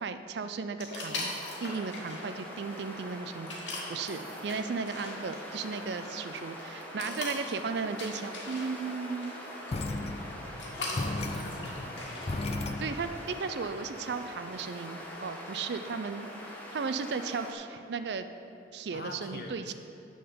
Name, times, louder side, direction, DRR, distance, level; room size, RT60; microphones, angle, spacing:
voice 1, 0.0-1.3 1.6-9.3 12.8-16.3 16.7-18.3 18.7-19.7, right 5 dB, 65° right, 10 dB, 0.4 m, -35 dB
sound 1, 0.8-12.4, left 2 dB, 80° left, 1.7 m, -42 dB
sound 2, 1.1-17.5, equal, 10° left, 1.1 m, -43 dB
sound 3, 9.7-13.2, left 2 dB, 35° left, 0.4 m, -36 dB
voice 2, 10.7-12.3 18.9-19.7, left 1 dB, 55° left, 2 dB, 0.9 m, -44 dB
10.0 x 3.9 x 6.9 m, 2.7 s
head